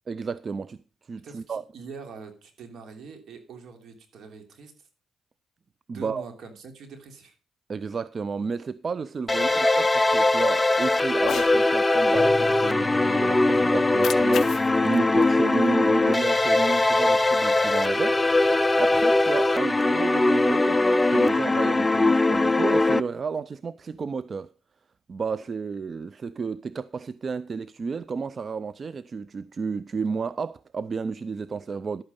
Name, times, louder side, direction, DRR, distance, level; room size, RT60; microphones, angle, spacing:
voice 1, 0.1-0.8 1.1-1.6 5.9-6.2 7.7-18.2 18.8-24.5 25.1-32.0, right 5 dB, 40° right, 0.5 m, -32 dB
voice 2, 1.2-4.9 5.9-7.3 9.3-9.6, right 5 dB, 65° right, 3.1 m, -44 dB
sound 1, 9.3-23.0, left 2 dB, 15° left, 0.5 m, -21 dB
Cat, 11.1-11.6 13.8-16.1, left 9 dB, 65° left, 0.5 m, -36 dB
sound 2, 12.1-20.0, left 4 dB, 35° left, 1.8 m, -42 dB
11.5 x 8.8 x 5.4 m
cardioid pair, 90°, 0 cm